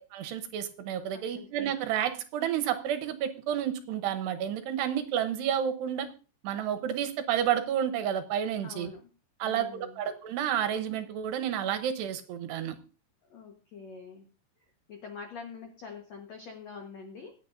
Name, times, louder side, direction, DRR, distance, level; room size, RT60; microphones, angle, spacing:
voice 1, 0.1-6.1 6.4-8.9 9.4-12.8, right 9 dB, 75° right, 9 dB, 2.9 m, -30 dB
voice 2, 1.1-1.5 8.6-9.1 9.4-10.0 13.3-14.2 14.9-17.3, left 5 dB, 75° left, 3 dB, 1.6 m, -45 dB
25.0 x 9.1 x 2.6 m, 0.36 s
omnidirectional pair, 5.2 m